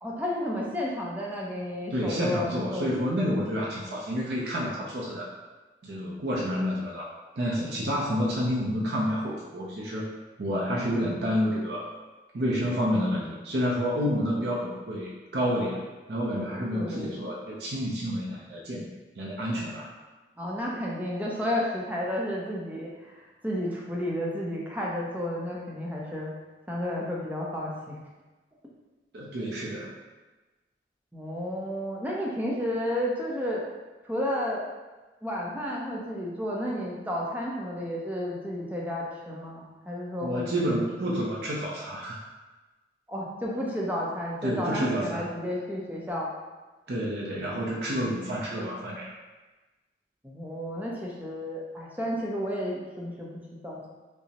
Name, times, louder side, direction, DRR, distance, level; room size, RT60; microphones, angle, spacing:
voice 1, 0.0-3.2 16.7-17.2 20.4-26.3 26.7-28.0 31.1-33.6 34.0-34.6 35.2-41.1 43.1-46.3 50.2-53.9, left 1 dB, 10° right, -4 dB, 0.5 m, -32 dB
voice 2, 1.9-5.3 5.8-10.1 10.4-11.9 12.3-15.8 16.1-18.9 19.2-19.9 29.1-29.9 40.2-42.2 44.4-45.3 46.9-49.1, equal, 60° right, -4 dB, 0.5 m, -29 dB
5.2 x 2.0 x 2.8 m, 1.2 s
head